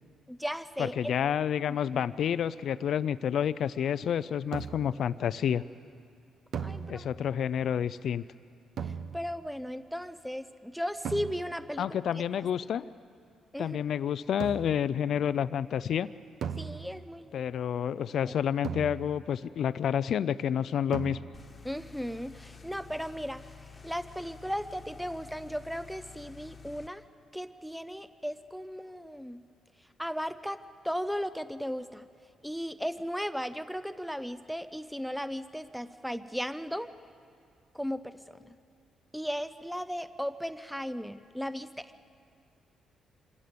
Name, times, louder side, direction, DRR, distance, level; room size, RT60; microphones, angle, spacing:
voice 1, 0.3-1.1 1.7-1.8 6.6-7.1 8.8-12.2 13.5-14.0 16.6-17.5 21.6-23.4 23.8-27.0 27.3-29.4 30.0-32.1 32.4-36.9 37.7-38.5 39.1-41.9, equal, ahead, 12 dB, 0.6 m, -36 dB
voice 2, 0.8-5.6 6.9-8.2 11.8-12.9 13.6-16.1 17.3-21.2, left 9 dB, 60° left, 15 dB, 0.4 m, -29 dB
sound 1, 4.5-5.1 6.5-7.4 8.8-9.5 11.1-11.8 14.4-15.0 16.4-17.3 18.6-19.4 20.9-21.6, right 7 dB, 65° right, 0.9 m, -38 dB
sound 2, 21.3-26.9, left 5 dB, 25° left, 1.3 m, -50 dB
26.0 x 17.0 x 6.8 m, 2.3 s
cardioid pair, 125°, 0 cm